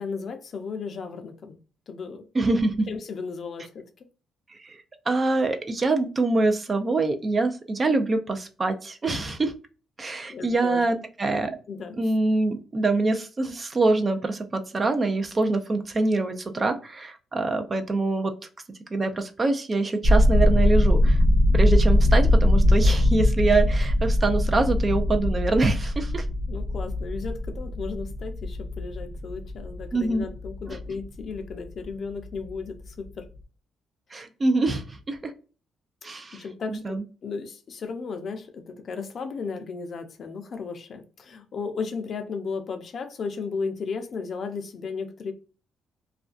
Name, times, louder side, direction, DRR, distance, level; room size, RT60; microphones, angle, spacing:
voice 1, 0.0-1.6 1.9-2.3 2.9-4.1 10.3-10.8 11.7-12.0 26.5-33.3 36.1-45.3, left 5 dB, 55° left, 0.5 m, -35 dB
voice 2, 2.3-2.9 4.5-4.8 5.1-9.5 10.0-11.6 12.0-18.3 18.9-21.2 21.5-26.3 29.9-30.3 30.7-30.8 34.1-35.3 36.0-37.0, right 3 dB, 30° right, 0.4 m, -25 dB
sound 1, 20.0-31.9 32.2-32.5 32.8-33.0, left 1 dB, 65° right, 0.7 m, -22 dB
2.4 x 2.2 x 2.4 m
cardioid pair, 90°, 0 cm